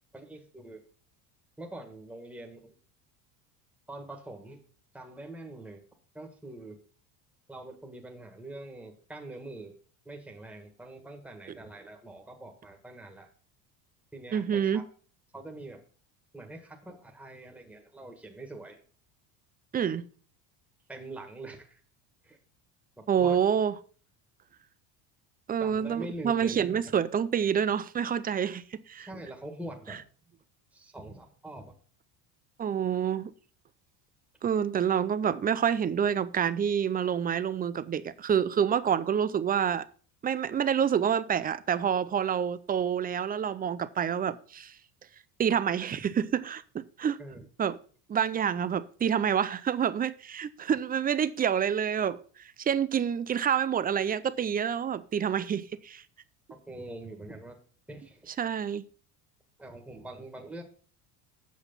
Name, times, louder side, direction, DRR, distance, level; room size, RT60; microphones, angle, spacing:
voice 1, 0.1-0.8 1.6-2.7 3.9-4.6 4.9-5.8 6.1-6.8 7.5-9.7 10.1-13.3 14.1-14.8 15.3-15.8 16.3-18.8 20.9-21.8 22.2-22.4 23.0-23.4 25.6-26.9 29.0-30.0 30.7-31.8 47.2-47.5 56.5-57.6 57.9-58.3 59.6-60.6, right 2 dB, 5° right, 1.8 m, -44 dB
voice 2, 14.3-14.8 19.7-20.0 23.1-23.7 25.5-29.1 32.6-33.3 34.4-39.8 40.2-44.7 45.4-47.2 47.6-47.8 48.1-52.2 52.6-56.0 58.4-58.8, right 8 dB, 20° right, 0.4 m, -27 dB
8.3 x 5.9 x 5.5 m
supercardioid pair, 105°, 49 cm